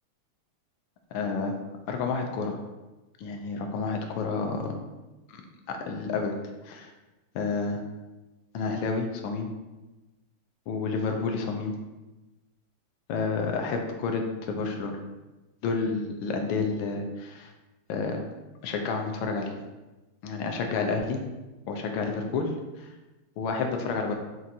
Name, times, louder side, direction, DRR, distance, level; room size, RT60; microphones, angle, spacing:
voice 1, 1.1-1.5 1.9-2.6 3.2-4.7 5.3-6.3 6.6-6.9 7.3-7.8 8.5-9.5 10.7-11.7 13.1-15.0 15.6-17.5 17.9-18.2 18.6-19.6 20.2-21.2 21.7-22.5 22.8-22.9 23.4-24.2, left 4 dB, 75° left, 3 dB, 1.2 m, -30 dB
5.8 x 2.5 x 2.7 m, 1.1 s
omnidirectional pair, 2.4 m